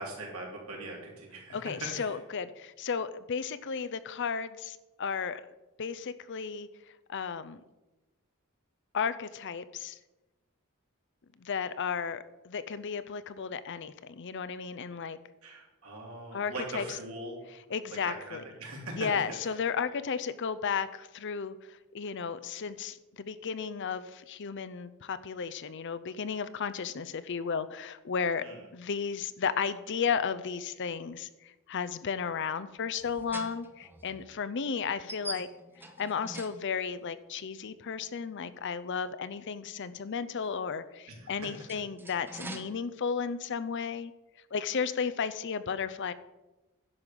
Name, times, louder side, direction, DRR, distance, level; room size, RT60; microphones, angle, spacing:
voice 1, 0.0-2.2 15.4-17.3 18.0-19.1 19.4-19.5 28.4-28.6 41.1-41.5, right 2 dB, 75° right, -2 dB, 3.3 m, -41 dB
voice 2, 1.5-5.4 5.8-6.7 7.1-7.6 8.9-10.0 11.4-15.2 16.3-16.8 17.7-18.4 19.0-28.4 28.7-35.5 36.0-44.1 44.5-46.1, left 6 dB, 55° left, 13 dB, 0.6 m, -34 dB
sound 1, 32.8-37.1 38.3-38.4 41.3-42.9, right 2 dB, 10° right, 0.9 m, -45 dB
11.0 x 5.5 x 6.8 m, 1.1 s
head